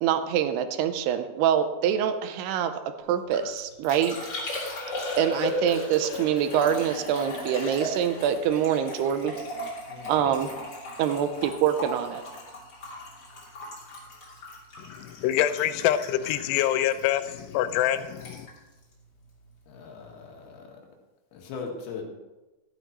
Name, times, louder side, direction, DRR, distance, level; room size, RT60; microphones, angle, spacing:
voice 1, 0.0-2.7 3.1-4.2 5.2-9.3 10.1-10.5 11.0-12.2, right 9 dB, 85° right, 9 dB, 2.7 m, -25 dB
Liquid, 3.1-19.7 20.0-20.5, left 1 dB, 35° left, 3.3 m, -37 dB
voice 2, 9.9-10.3 19.7-20.8 21.3-22.0, left 5 dB, 75° left, 1 dB, 3.3 m, -39 dB
voice 3, 14.8-18.5, left 11 dB, 90° left, 11 dB, 2.7 m, -26 dB
12.5 x 11.5 x 3.0 m, 1.1 s
omnidirectional pair, 4.7 m